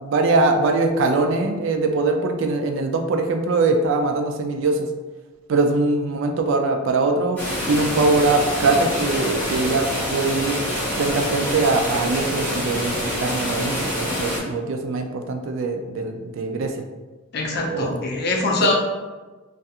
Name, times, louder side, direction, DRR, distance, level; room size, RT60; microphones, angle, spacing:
voice 1, 0.0-4.9 5.5-7.4 7.7-10.6 11.0-16.7 17.7-17.9, right 3 dB, 65° right, 4 dB, 0.3 m, -22 dB
sound 1, 7.4-14.4, equal, 10° left, 0.6 m, -26 dB
voice 2, 17.3-18.7, left 2 dB, 50° left, 0 dB, 0.5 m, -23 dB
2.4 x 2.3 x 2.7 m, 1.3 s
head